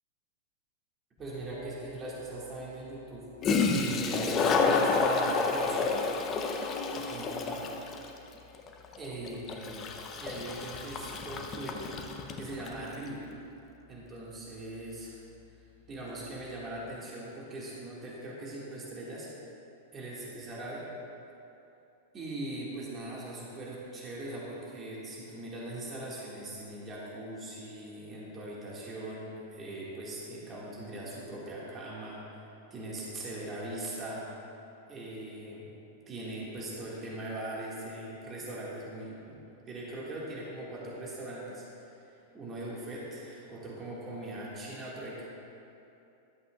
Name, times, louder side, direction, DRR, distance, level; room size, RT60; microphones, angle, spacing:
voice 1, 1.2-3.3 3.6-6.0 6.9-7.7 9.0-11.8 12.4-13.3 13.9-15.2 15.9-19.3 19.9-20.8 22.1-32.4 32.7-34.3 34.9-35.7 36.1-39.4 39.7-41.9 42.3-45.3, right 1 dB, 25° right, -6 dB, 2.1 m, -40 dB
Toilet flush, 1.4-1.5 3.1-3.2 3.4-12.8, left 4 dB, 30° left, 0.8 m, -30 dB
13.0 x 8.1 x 2.5 m, 2.8 s
hypercardioid pair, 100°, 0 cm